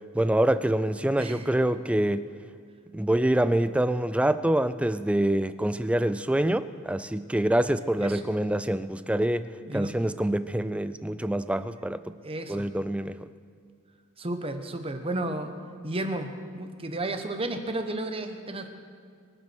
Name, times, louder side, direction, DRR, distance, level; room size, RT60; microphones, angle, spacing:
voice 1, 0.1-2.3 2.9-12.0 12.5-13.3, right 1 dB, 5° right, 13 dB, 0.3 m, -26 dB
voice 2, 1.2-1.5 8.0-8.3 9.6-9.9 12.2-12.7 14.2-15.5 15.8-18.7, right 2 dB, 25° right, 7 dB, 1.0 m, -33 dB
23.0 x 8.6 x 6.2 m, 2.1 s
head